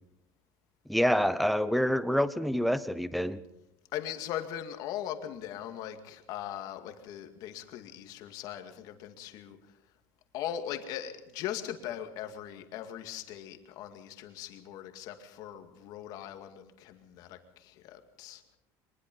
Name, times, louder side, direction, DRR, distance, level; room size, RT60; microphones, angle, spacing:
voice 1, 0.9-3.4, equal, ahead, 14 dB, 0.7 m, -27 dB
voice 2, 3.9-9.6 10.3-18.4, left 11 dB, 50° left, 7 dB, 2.2 m, -40 dB
23.5 x 20.5 x 5.4 m, 0.88 s
cardioid pair, 165°, 8 cm